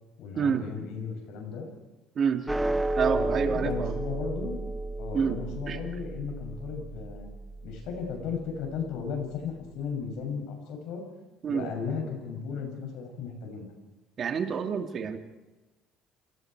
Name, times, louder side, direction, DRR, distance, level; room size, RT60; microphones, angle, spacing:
voice 1, 0.2-1.7 3.0-4.6 5.0-7.3 7.6-11.0 11.5-13.7, left 6 dB, 80° left, 3 dB, 7.2 m, -35 dB
voice 2, 2.2-2.5 3.0-3.9 5.1-5.8 11.4-11.7 14.2-15.2, right 6 dB, 45° right, 6 dB, 2.2 m, -28 dB
sound 1, 2.5-9.0, right 2 dB, 5° right, 1.1 m, -33 dB
29.0 x 19.0 x 4.7 m, 1.1 s
cardioid pair, 110°, 0 cm